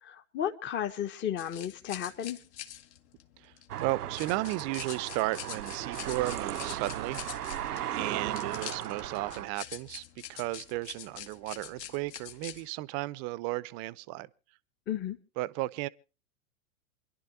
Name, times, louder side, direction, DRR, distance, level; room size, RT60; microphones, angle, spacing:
voice 1, 0.0-2.4 14.9-15.2, left 10 dB, 25° left, 1.2 m, -33 dB
sound 1, 1.4-12.7, left 11 dB, 50° left, 1.6 m, -45 dB
sound 2, 3.7-9.5, right 11 dB, 85° right, 0.8 m, -36 dB
voice 2, 3.8-7.2 7.9-10.0 10.3-14.3 15.4-15.9, right 19 dB, 35° right, 0.7 m, -34 dB
28.0 x 11.5 x 2.7 m
hypercardioid pair, 110°, 44 cm